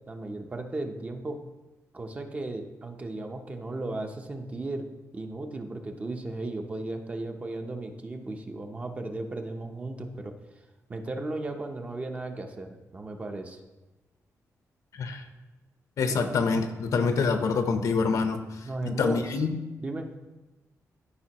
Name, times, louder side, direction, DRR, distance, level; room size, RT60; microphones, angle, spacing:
voice 1, 0.1-1.4 1.9-4.9 5.1-10.3 10.9-13.6 16.1-16.3 18.6-19.4 19.8-20.2, right 2 dB, 25° right, 4 dB, 0.6 m, -35 dB
voice 2, 16.0-18.4 18.8-19.5, left 4 dB, 65° left, 7 dB, 0.7 m, -26 dB
13.5 x 5.1 x 2.9 m, 1.1 s
wide cardioid pair, 175°, 6 cm